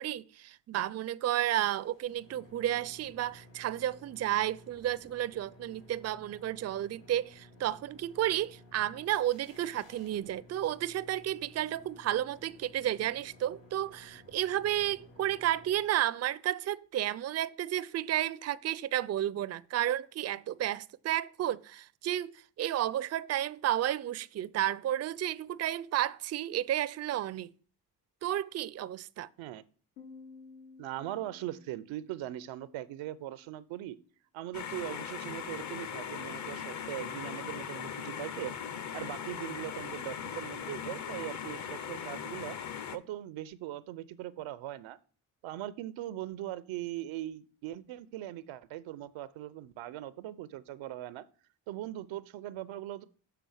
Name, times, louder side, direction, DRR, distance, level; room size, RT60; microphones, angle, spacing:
voice 1, 0.0-27.5 28.2-29.3, right 12 dB, 35° right, 0.4 m, -32 dB
sound 1, 1.6-16.2, left 1 dB, 75° left, 3.7 m, -56 dB
Piano, 30.0-33.4, left 4 dB, 90° left, 2.2 m, -54 dB
voice 2, 30.8-34.0 34.3-38.5 38.9-42.6 42.9-45.0 45.4-51.3 51.7-53.1, right 14 dB, 85° right, 0.6 m, -40 dB
sound 2, 34.5-43.0, left 8 dB, 40° left, 0.7 m, -39 dB
6.9 x 3.8 x 6.2 m
supercardioid pair, 60°, 45 cm